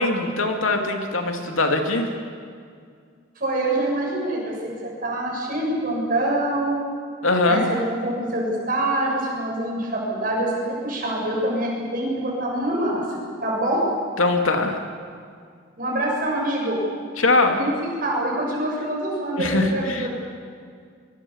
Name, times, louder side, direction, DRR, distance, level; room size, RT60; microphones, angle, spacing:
voice 1, 0.0-2.1 7.2-7.6 14.2-14.8 17.2-17.6 19.4-20.1, left 2 dB, 85° left, 4 dB, 2.8 m, -21 dB
voice 2, 3.4-6.7 7.4-10.5 10.8-13.0 13.4-13.8 15.8-16.8 17.6-17.7 18.0-20.1, right 1 dB, 45° right, -2 dB, 7.4 m, -25 dB
24.0 x 23.5 x 7.3 m, 2.1 s
head